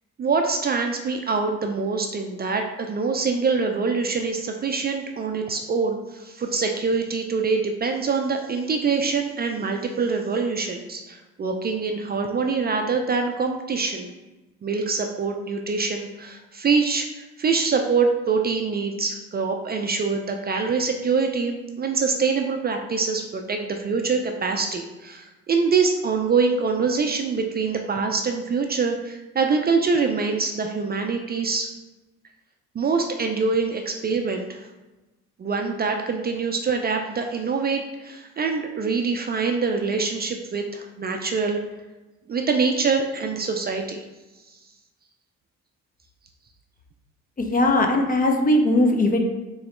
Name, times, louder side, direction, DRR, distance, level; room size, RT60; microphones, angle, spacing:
voice 1, 0.2-14.1 14.6-31.7 32.7-34.6 35.4-41.6 42.3-44.0, right 4 dB, 35° right, 4 dB, 0.4 m, -24 dB
voice 2, 47.4-49.2, left 1 dB, 30° left, 4 dB, 0.5 m, -19 dB
3.9 x 3.0 x 3.0 m, 1.1 s
cardioid pair, 90°, 30 cm